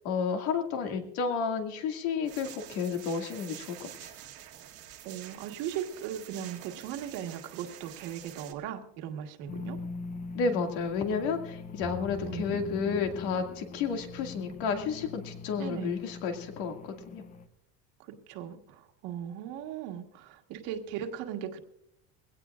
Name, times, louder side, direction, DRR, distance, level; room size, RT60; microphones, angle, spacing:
voice 1, 0.0-4.1 10.3-17.2, left 5 dB, 70° left, 4 dB, 2.3 m, -31 dB
sound 1, 2.3-8.5, right 11 dB, 45° right, 1.4 m, -48 dB
voice 2, 5.0-9.8 12.3-12.6 15.6-15.9 18.0-21.6, right 9 dB, 65° right, 4 dB, 1.6 m, -38 dB
sound 2, 9.5-17.5, left 4 dB, 25° left, 0.6 m, -42 dB
21.0 x 17.0 x 2.5 m, 0.79 s
cardioid pair, 160°, 34 cm